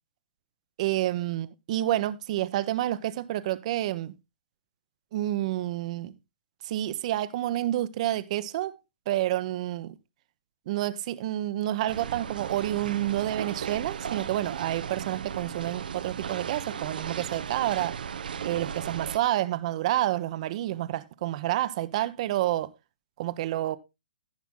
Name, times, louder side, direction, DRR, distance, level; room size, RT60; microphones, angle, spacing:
voice 1, 0.8-4.1 5.1-6.1 6.6-8.8 9.1-10.0 10.7-18.0 18.4-22.7 23.2-23.8, right 14 dB, 50° right, 1.0 m, -29 dB
sound 1, 11.9-19.2, right 7 dB, 75° right, 0.8 m, -36 dB
14.5 x 5.9 x 3.8 m
hypercardioid pair, 135°, 5 cm